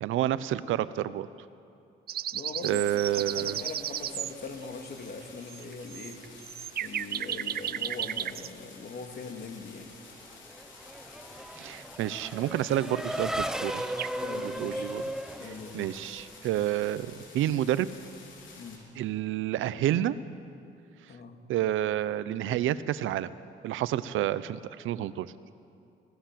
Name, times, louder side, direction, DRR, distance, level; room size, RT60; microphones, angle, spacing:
voice 1, 0.0-1.3 2.6-3.6 11.6-13.8 14.4-15.0 15.4-17.9 19.0-20.1 21.5-23.3 23.6-25.3, right 12 dB, 85° right, 15 dB, 0.8 m, -29 dB
sound 1, 2.1-4.3 5.2-5.3 5.5-8.5 12.8-12.9 13.2-13.3 13.5-14.6, right 10 dB, 50° right, 0.5 m, -34 dB
voice 2, 2.3-6.2 6.8-9.9 14.2-15.0 15.4-15.9 18.6-18.8 21.1-21.4, left 4 dB, 55° left, 4 dB, 2.5 m, -41 dB
sound 2, 2.6-18.8, left 4 dB, 75° left, 4.2 m, -51 dB
Race car auto racing / Accelerating revving vroom, 10.3-16.4, right 1 dB, 5° right, 0.9 m, -36 dB
24.5 x 17.5 x 7.6 m, 2.5 s
cardioid pair, 90°, 20 cm